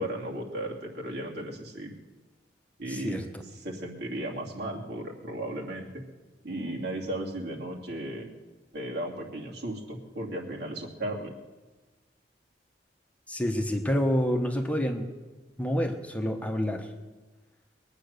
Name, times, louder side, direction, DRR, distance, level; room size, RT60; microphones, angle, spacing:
voice 1, 0.0-1.9 2.8-6.0 6.4-8.3 8.7-11.3, right 1 dB, 65° right, -1 dB, 2.7 m, -35 dB
voice 2, 2.9-3.4 13.3-15.1 15.6-16.9, equal, 10° left, 3 dB, 1.1 m, -28 dB
22.0 x 9.1 x 6.7 m, 1.2 s
head